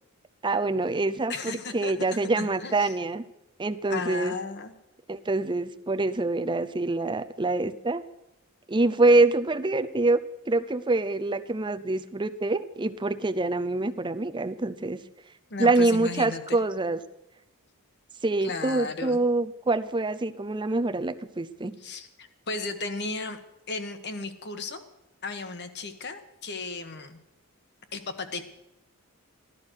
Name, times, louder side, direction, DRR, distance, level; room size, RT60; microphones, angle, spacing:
voice 1, 0.4-3.2 3.6-4.3 5.1-8.0 8.7-15.0 15.6-17.0 18.2-21.8, right 2 dB, 20° right, 10 dB, 0.6 m, -25 dB
voice 2, 1.3-1.9 2.4-2.9 3.9-4.7 15.5-16.6 18.4-19.2 21.8-23.4 23.7-24.8 25.2-27.2 27.9-28.4, left 3 dB, 50° left, 9 dB, 1.4 m, -35 dB
15.0 x 11.5 x 6.4 m, 0.89 s
head